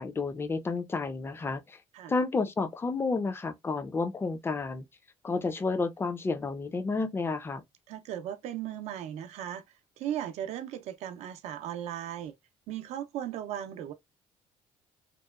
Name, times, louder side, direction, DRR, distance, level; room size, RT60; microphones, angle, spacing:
voice 1, 0.0-1.8 2.1-4.8 5.2-7.6, left 4 dB, 20° left, 0.4 m, -31 dB
voice 2, 7.9-9.6 10.0-12.3 12.7-13.9, right 11 dB, 70° right, 0.5 m, -37 dB
2.8 x 2.1 x 2.3 m
cardioid pair, 95°, 12 cm